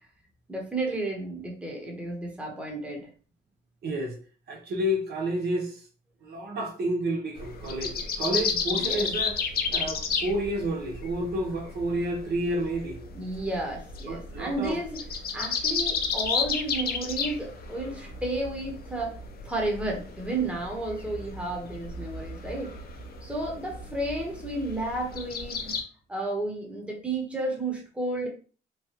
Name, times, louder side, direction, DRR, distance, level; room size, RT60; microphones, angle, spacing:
voice 1, 0.5-3.1 8.7-9.1 13.1-15.0 15.3-19.2 19.4-22.7 23.2-25.8 26.1-28.3, right 2 dB, 5° right, 1.0 m, -32 dB
voice 2, 3.8-4.2 4.5-5.8 6.2-9.4 9.7-13.0 14.0-14.8, right 1 dB, 55° right, 0.8 m, -30 dB
sound 1, 7.4-25.8, left 5 dB, 50° left, 0.6 m, -33 dB
3.1 x 2.2 x 2.9 m
cardioid pair, 90°, 20 cm